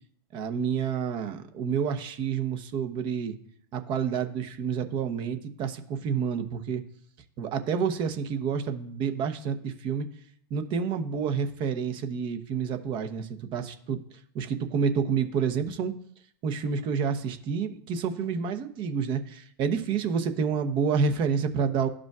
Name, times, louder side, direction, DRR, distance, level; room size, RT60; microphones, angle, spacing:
voice 1, 0.3-3.4 3.7-6.8 7.4-10.1 10.5-14.0 14.3-15.9 16.4-21.9, right 6 dB, 40° right, 8 dB, 0.9 m, -29 dB
13.0 x 5.0 x 2.4 m, 0.65 s
hypercardioid pair, 115°, 13 cm